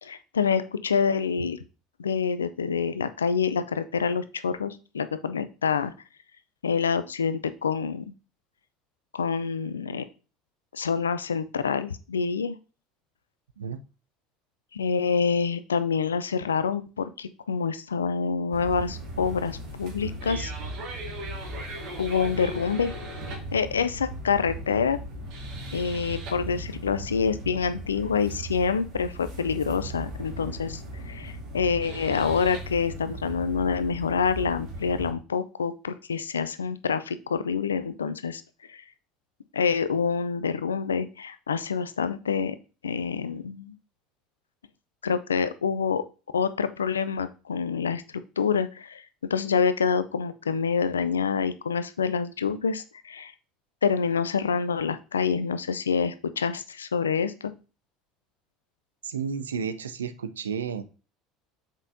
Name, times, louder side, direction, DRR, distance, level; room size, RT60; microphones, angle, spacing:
voice 1, 0.0-1.6 2.0-5.9 6.6-8.0 9.1-10.0 10.7-12.6 14.7-20.5 22.0-22.9 23.5-25.0 25.7-38.4 38.7-38.8 39.5-42.6 42.8-43.8 45.0-46.0 46.3-49.0 49.3-53.3 53.8-57.5, left 6 dB, 80° left, 13 dB, 0.4 m, -27 dB
sound 1, 18.5-35.1, right 1 dB, 60° right, 2.0 m, -37 dB
voice 2, 59.0-60.8, right 7 dB, 80° right, 12 dB, 0.5 m, -32 dB
7.2 x 5.3 x 2.7 m, 0.34 s
figure-of-eight pair, 65°, 0 cm